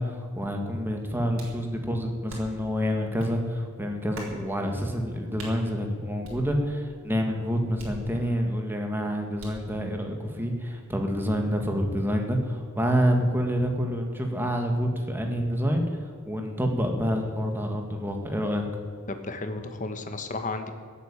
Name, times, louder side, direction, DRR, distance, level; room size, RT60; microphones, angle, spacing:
voice 1, 0.0-16.0 16.2-18.7, equal, 10° right, 2 dB, 1.8 m, -27 dB
sound 1, 1.4-1.7 2.3-2.7 3.2-3.3 4.1-4.4 5.4-5.6 6.2-6.9 7.8-8.5 9.4-9.7, right 2 dB, 65° right, 4.2 m, -43 dB
voice 2, 19.1-20.7, left 3 dB, 35° left, 7 dB, 1.3 m, -33 dB
16.0 x 8.5 x 8.8 m, 2.1 s
head